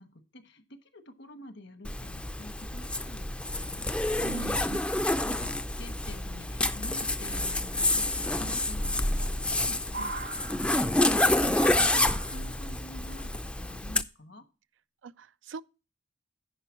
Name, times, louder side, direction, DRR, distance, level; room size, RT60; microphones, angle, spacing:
voice 1, 0.0-14.4, left 1 dB, 65° left, 1.3 m, -48 dB
Zipper (clothing), 1.8-14.0, left 1 dB, 5° left, 0.4 m, -28 dB
voice 2, 4.2-4.8 10.0-10.1 15.0-15.6, right 5 dB, 90° right, 0.4 m, -41 dB
sound 1, 6.0-6.2 7.7-7.8 9.1-9.6 9.8-11.1 11.5-12.6 13.5-13.6, right 3 dB, 60° right, 1.0 m, -41 dB
9.9 x 5.2 x 6.2 m
head